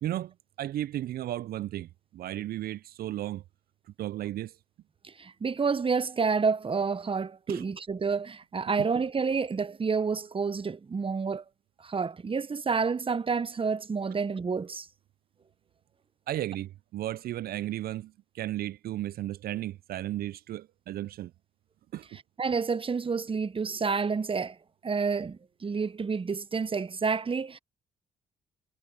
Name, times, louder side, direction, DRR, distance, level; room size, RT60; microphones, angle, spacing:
voice 1, 0.0-3.4 4.0-4.6 7.5-7.6 16.3-21.3 21.9-22.1, right 13 dB, 60° right, 0.7 m, -34 dB
voice 2, 5.0-11.4 11.8-14.9 22.4-24.6 24.8-27.6, right 5 dB, 30° right, 1.1 m, -29 dB
hypercardioid pair, 45°, 17 cm